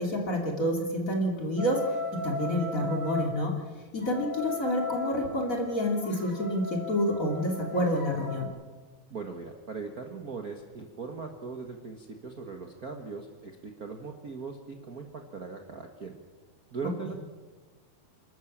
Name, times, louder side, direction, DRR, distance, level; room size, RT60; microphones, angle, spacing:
voice 1, 0.0-3.5 3.9-8.5, equal, 25° left, 1 dB, 2.8 m, -28 dB
sound 1, 1.6-3.3 4.0-8.5, left 3 dB, 10° left, 4.6 m, -37 dB
voice 2, 9.1-16.2 16.7-17.1, right 4 dB, 60° right, 3 dB, 0.9 m, -39 dB
28.5 x 13.0 x 7.4 m, 1.4 s
omnidirectional pair, 4.1 m